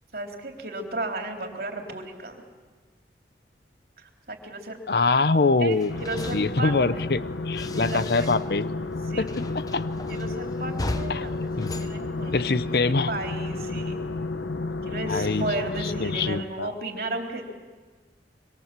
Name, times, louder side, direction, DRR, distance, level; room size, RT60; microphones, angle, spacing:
voice 1, 0.1-2.4 4.0-4.8 5.6-6.8 7.7-8.3 9.1-9.3 10.1-12.4 13.1-14.0 14.8-17.4, right 2 dB, 55° right, 2 dB, 3.5 m, -34 dB
voice 2, 4.9-5.9 6.3-8.7 9.2-9.9 11.1-11.3 11.6-11.7 12.3-13.1 15.1-15.5 15.8-16.7, left 3 dB, 65° left, 14 dB, 0.8 m, -24 dB
sound 1, 5.7-8.7 8.9-12.8, left 1 dB, 20° left, 0.8 m, -38 dB
sound 2, 5.9-16.4, left 3 dB, 90° left, 1.0 m, -32 dB
26.0 x 25.0 x 7.5 m, 1.4 s
head